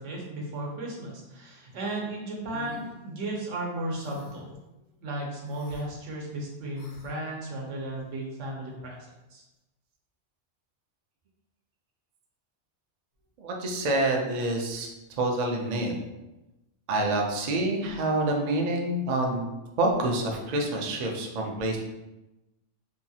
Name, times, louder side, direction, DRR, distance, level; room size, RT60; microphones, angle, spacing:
voice 1, 0.0-4.5 5.0-9.0 9.3-9.4, right 1 dB, 85° right, -2 dB, 1.1 m, -35 dB
sound 1, 2.5-2.9 3.9-4.5 5.5-5.9 6.8-7.1, left 2 dB, 70° left, 0.8 m, -45 dB
voice 2, 13.4-14.9 15.2-15.9 16.9-19.5 19.8-21.8, right 2 dB, 65° right, 1 dB, 0.4 m, -27 dB
2.8 x 2.3 x 2.7 m, 0.99 s
omnidirectional pair, 1.2 m